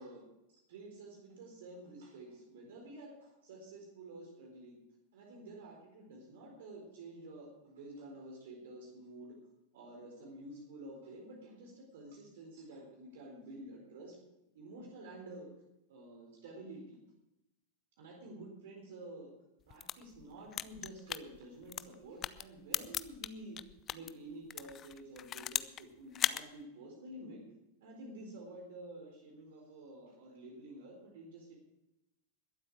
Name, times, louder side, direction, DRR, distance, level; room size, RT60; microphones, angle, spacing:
voice 1, 0.0-4.8 5.1-9.4 9.7-14.2 14.5-15.5 15.9-17.0 18.0-19.3 19.7-27.4 27.8-31.6, right 1 dB, 55° right, 0 dB, 4.0 m, -50 dB
sound 1, 19.6-24.1 24.5-25.8 26.1-26.4, left 10 dB, 30° left, 0.5 m, -37 dB
22.0 x 8.1 x 4.8 m, 0.91 s
figure-of-eight pair, 90°, 0 cm